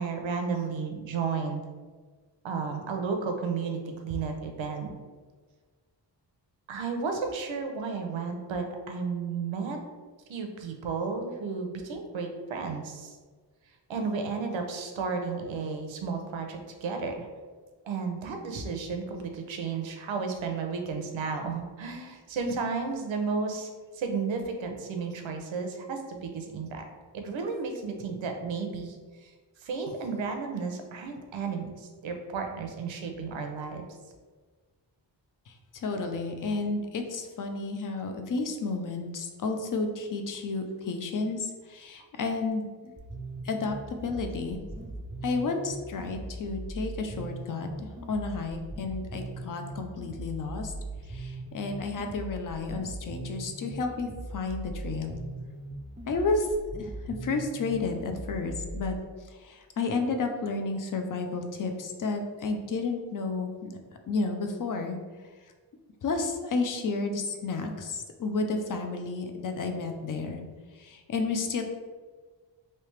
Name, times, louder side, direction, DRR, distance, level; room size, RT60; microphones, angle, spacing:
voice 1, 0.0-1.6 2.4-4.9 6.7-9.8 10.3-13.2 13.9-17.3 17.8-26.8 27.1-29.0 29.2-29.3 29.6-33.9, right 5 dB, 80° right, 4 dB, 0.7 m, -33 dB
voice 2, 35.5-42.7 43.4-44.6 45.2-50.7 51.0-55.2 56.1-63.7 64.1-65.0 66.0-70.4 70.7-71.6, left 3 dB, 45° left, 5 dB, 0.5 m, -32 dB
sound 1, 43.0-59.0, right 2 dB, 15° right, 0.4 m, -40 dB
3.3 x 2.8 x 3.1 m, 1.4 s
wide cardioid pair, 95°, 46 cm